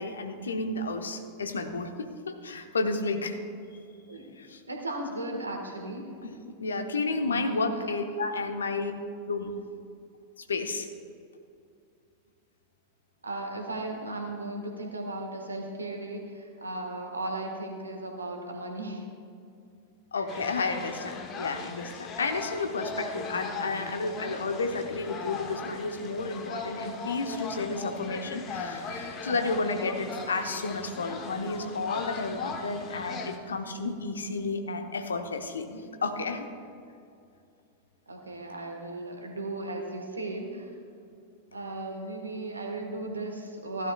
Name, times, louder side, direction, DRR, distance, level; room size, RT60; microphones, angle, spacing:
voice 1, 0.0-1.9 2.3-3.4 4.4-4.6 6.2-6.3 6.6-8.9 9.2-9.6 10.5-10.9 20.1-36.5, left 3 dB, 70° left, 6 dB, 0.9 m, -31 dB
voice 2, 4.7-6.2 7.2-7.9 13.2-19.1 20.1-20.2 38.1-40.7 41.5-43.9, right 2 dB, 80° right, 3 dB, 1.5 m, -36 dB
sound 1, 20.3-33.4, left 4 dB, 30° left, 1.1 m, -39 dB
16.0 x 11.5 x 2.4 m, 2.5 s
figure-of-eight pair, 90°, 0 cm